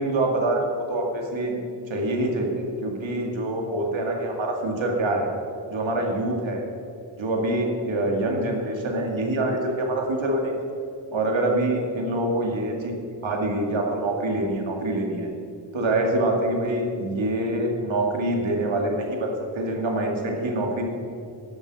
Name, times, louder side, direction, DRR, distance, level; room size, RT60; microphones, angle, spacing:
voice 1, 0.0-1.6 1.9-5.3 5.7-6.6 7.2-10.5 11.1-12.9 13.2-15.3 15.7-20.8, right 1 dB, 80° right, 1 dB, 2.2 m, -25 dB
12.0 x 8.1 x 6.3 m, 2.7 s
wide cardioid pair, 125°, 45 cm